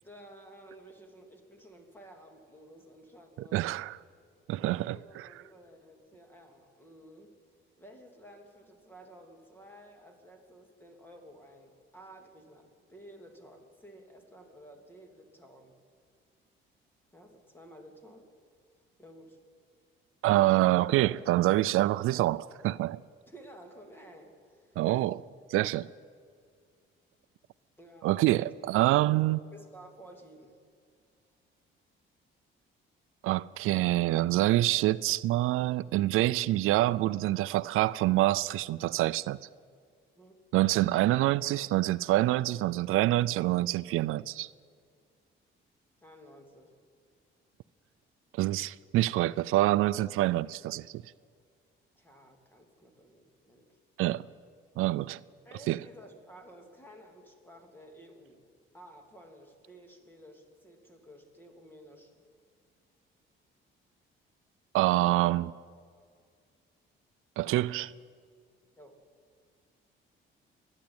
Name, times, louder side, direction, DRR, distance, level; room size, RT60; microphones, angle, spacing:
voice 1, 0.0-3.8 4.6-7.4 7.8-15.8 17.1-18.3 19.0-19.4 23.3-24.8 27.8-28.5 29.1-30.6 40.2-40.3 46.0-46.7 52.0-53.7 55.4-58.4 58.7-62.1 68.8-69.0, right 1 dB, 10° left, 3.0 m, -53 dB
voice 2, 3.5-4.0 4.5-5.3 20.2-23.0 24.8-25.2 25.5-25.9 28.0-29.4 33.2-39.4 40.5-44.5 48.3-50.9 54.0-54.3 54.8-55.2 55.7-55.8 64.7-65.5 67.4-67.9, right 16 dB, 90° right, 0.5 m, -26 dB
28.5 x 11.0 x 8.9 m
cardioid pair, 135°, 21 cm